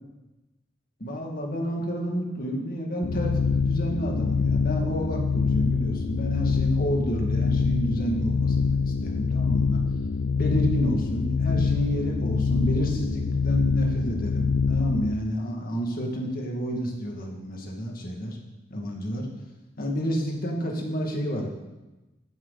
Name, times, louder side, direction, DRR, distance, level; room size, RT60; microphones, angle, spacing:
voice 1, 1.0-9.8 10.4-18.4 18.7-19.3 19.8-21.5, equal, 50° left, 0 dB, 2.3 m, -30 dB
sound 1, 3.0-15.1, left 5 dB, 75° left, 0.4 m, -25 dB
14.0 x 10.0 x 4.2 m, 1.1 s
head